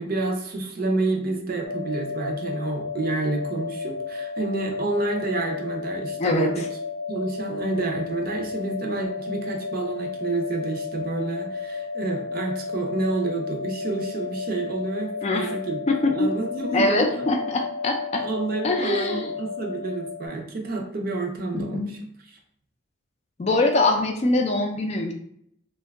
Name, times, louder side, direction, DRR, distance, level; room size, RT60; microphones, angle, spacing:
voice 1, 0.0-6.7 7.1-17.3 18.2-22.4, right 3 dB, 45° right, 2 dB, 0.5 m, -29 dB
sound 1, 1.6-20.3, left 5 dB, 90° right, 0.7 m, -33 dB
voice 2, 6.2-6.5 15.2-15.5 15.9-16.0 16.7-18.3 18.6-19.3 21.5-21.9 23.4-25.1, left 2 dB, 30° left, 3 dB, 0.3 m, -23 dB
2.7 x 2.3 x 3.4 m, 0.70 s
head